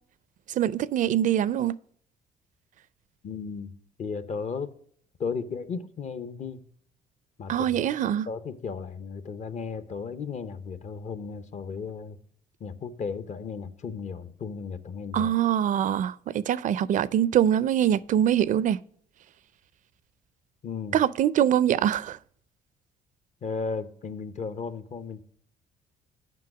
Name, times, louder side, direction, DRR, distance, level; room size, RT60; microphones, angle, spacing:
voice 1, 0.5-1.8 7.5-8.3 15.1-18.8 20.9-22.2, right 10 dB, 55° right, 0.4 m, -24 dB
voice 2, 3.2-3.7 4.0-4.7 5.2-6.6 7.4-7.9 8.3-12.2 12.6-15.3 20.6-21.0 23.4-25.2, left 5 dB, 50° left, 0.8 m, -35 dB
7.6 x 5.6 x 5.9 m
cardioid pair, 90°, 16 cm